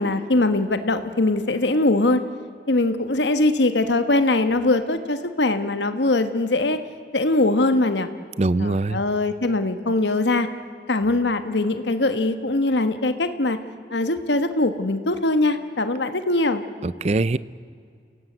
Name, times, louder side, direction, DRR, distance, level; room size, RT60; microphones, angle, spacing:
voice 1, 0.0-2.2 2.7-6.8 7.1-8.1 8.6-10.5 10.9-13.6 13.9-16.6, left 2 dB, 85° left, 9 dB, 1.3 m, -21 dB
voice 2, 8.4-9.0 16.8-17.4, right 2 dB, 35° right, 18 dB, 0.5 m, -22 dB
28.5 x 17.5 x 7.9 m, 2.3 s
head